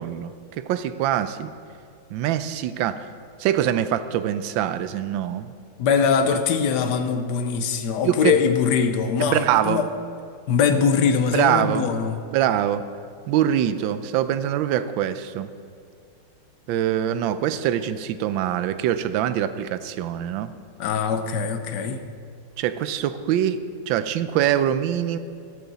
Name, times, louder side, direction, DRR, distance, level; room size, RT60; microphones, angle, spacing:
voice 1, 0.0-1.5 2.1-3.0 3.4-5.5 8.0-8.3 9.3-9.8 11.3-11.8 12.3-12.8 13.3-15.5 16.7-20.5 22.6-23.6 23.9-25.2, right 11 dB, 75° right, 12 dB, 1.3 m, -24 dB
voice 2, 5.8-9.9 10.5-12.2 20.8-22.0, left 6 dB, 65° left, 8 dB, 1.3 m, -22 dB
14.0 x 11.5 x 4.1 m, 2.4 s
omnidirectional pair, 2.2 m